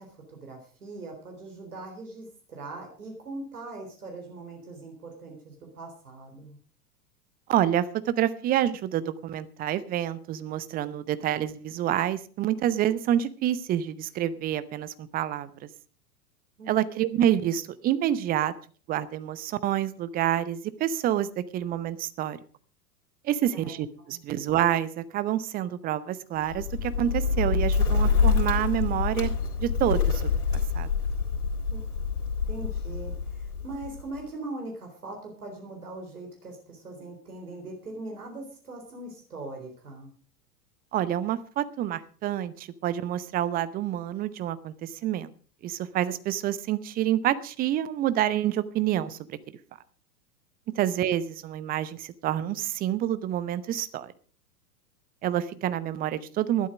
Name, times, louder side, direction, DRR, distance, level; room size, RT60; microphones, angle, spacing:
voice 1, 0.0-6.6 16.6-16.7 23.5-24.2 31.7-31.8 32.5-40.1, right 2 dB, 70° right, 2 dB, 3.9 m, -41 dB
voice 2, 7.5-15.7 16.7-18.5 18.9-22.4 23.2-29.3 29.6-30.3 30.7-30.9 40.9-45.3 45.6-49.4 50.8-54.1 55.2-56.7, right 11 dB, 20° right, 16 dB, 0.7 m, -28 dB
Bird, 26.4-34.2, left 5 dB, 70° left, 3.9 m, -26 dB
13.5 x 12.0 x 5.1 m, 0.42 s
figure-of-eight pair, 95°, 46 cm